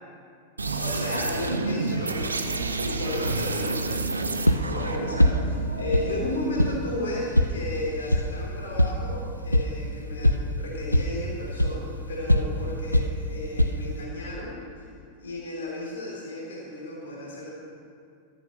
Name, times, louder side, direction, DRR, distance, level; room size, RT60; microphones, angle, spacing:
sound 1, 0.6-6.7, right 3 dB, 75° right, 0.7 m, -30 dB
voice 1, 0.8-14.8 15.2-17.5, left 1 dB, 65° left, -4 dB, 3.1 m, -34 dB
sound 2, 3.2-14.0, equal, 90° left, 0.6 m, -26 dB
13.0 x 7.6 x 6.4 m, 2.3 s
figure-of-eight pair, 90°, 0 cm